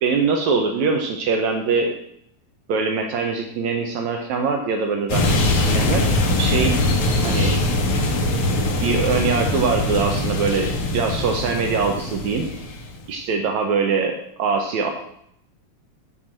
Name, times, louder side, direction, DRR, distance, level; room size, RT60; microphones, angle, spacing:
voice 1, 0.0-1.9 2.7-6.0 6.4-6.9 7.2-7.6 8.8-12.5 13.1-14.9, right 4 dB, 75° right, 3 dB, 2.2 m, -23 dB
sound 1, 5.1-13.0, left 2 dB, 75° left, 2.8 m, -22 dB
10.0 x 4.6 x 7.6 m, 0.72 s
omnidirectional pair, 3.4 m